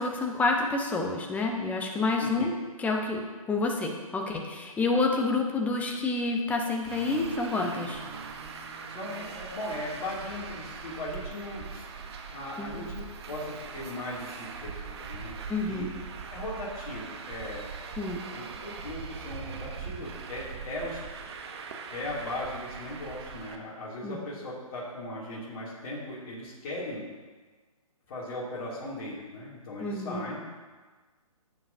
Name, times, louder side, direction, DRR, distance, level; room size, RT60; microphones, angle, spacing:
voice 1, 0.0-2.5 2.8-8.0 12.6-12.9 15.5-15.9 18.0-18.2 24.0-24.2 29.8-30.2, left 3 dB, 10° left, 1 dB, 0.9 m, -28 dB
Traffic noise roadway noise, 6.8-23.6, right 5 dB, 45° right, 1.0 m, -41 dB
voice 2, 8.9-11.9 12.3-15.3 15.6-15.9 16.3-18.0 18.3-21.0 21.9-27.1 28.1-30.4, left 1 dB, 40° left, -8 dB, 2.8 m, -38 dB
15.0 x 7.7 x 2.8 m, 1.4 s
hypercardioid pair, 140°, 19 cm